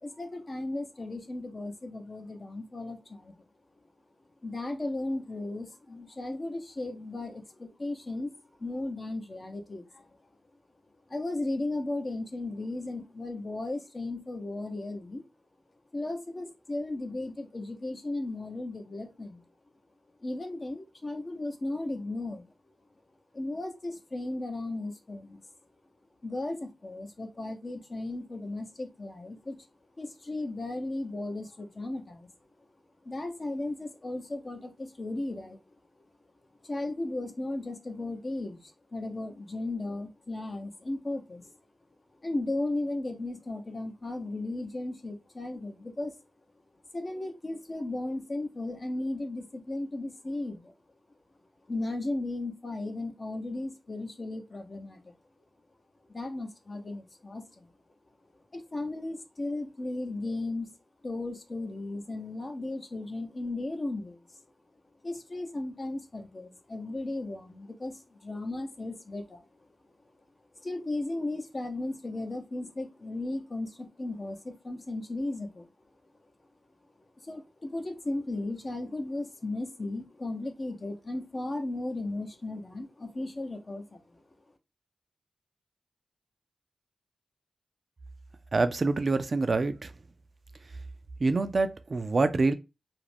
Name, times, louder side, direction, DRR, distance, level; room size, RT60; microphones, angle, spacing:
voice 1, 0.0-3.3 4.4-8.3 8.6-10.1 11.1-15.2 15.9-19.4 20.2-22.5 23.3-25.4 26.2-29.7 30.0-32.3 33.0-35.7 36.6-41.6 42.2-46.2 46.9-50.7 51.7-55.1 56.1-57.7 58.5-60.7 61.0-64.4 65.0-69.7 70.6-75.7 77.2-84.2, left 2 dB, 45° left, 0.6 m, -35 dB
voice 2, 88.5-89.9 91.2-92.5, right 3 dB, 55° right, 0.3 m, -26 dB
2.4 x 2.1 x 3.2 m
cardioid pair, 40°, 0 cm